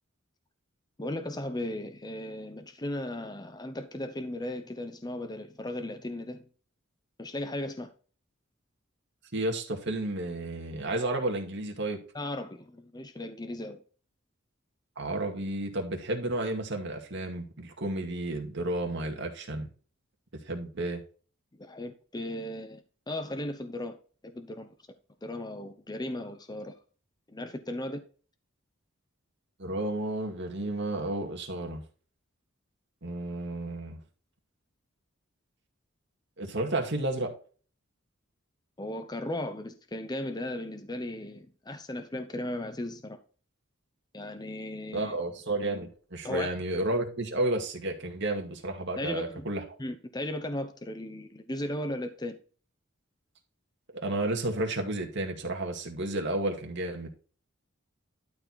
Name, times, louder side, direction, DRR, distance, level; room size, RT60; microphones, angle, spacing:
voice 1, 1.0-6.5 7.2-7.9 12.1-13.8 21.5-24.0 24.2-24.7 25.2-26.7 27.3-28.0 38.8-43.2 44.1-45.1 46.2-46.6 49.0-49.5 49.8-52.4, left 1 dB, 20° left, 0.8 m, -36 dB
voice 2, 9.3-12.0 15.0-19.7 20.5-21.0 29.6-31.8 33.0-34.0 36.4-37.3 44.9-49.6 53.9-57.1, right 2 dB, 60° right, 2.3 m, -32 dB
12.0 x 4.8 x 4.2 m
head